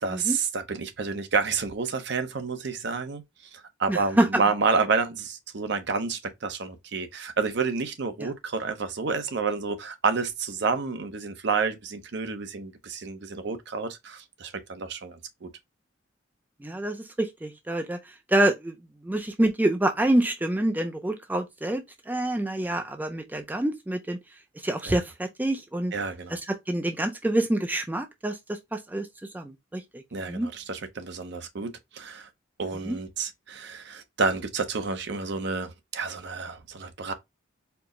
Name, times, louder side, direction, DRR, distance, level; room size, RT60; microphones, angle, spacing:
voice 1, 0.0-3.2 3.5-15.5 24.9-25.0 25.9-26.4 30.1-32.3 32.6-37.1, right 4 dB, 60° right, 0.7 m, -29 dB
voice 2, 3.9-4.3 8.2-8.3 16.6-18.0 18.3-18.7 19.0-24.2 24.6-25.9 26.3-29.1 29.3-30.0 30.3-30.5 32.9-33.0, right 1 dB, 10° right, 0.3 m, -27 dB
4.4 x 2.0 x 3.6 m
head